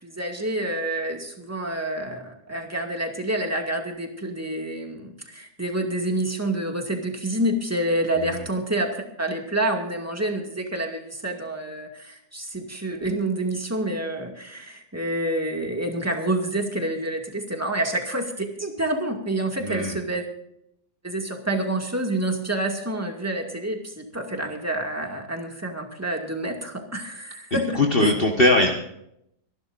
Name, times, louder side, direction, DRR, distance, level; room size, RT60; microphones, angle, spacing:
voice 1, 0.0-20.2 21.0-28.1, right 1 dB, 10° right, 2 dB, 2.2 m, -28 dB
voice 2, 19.6-20.0 27.7-28.7, left 1 dB, 35° left, 1 dB, 1.6 m, -20 dB
26.5 x 12.0 x 2.6 m, 0.75 s
omnidirectional pair, 1.6 m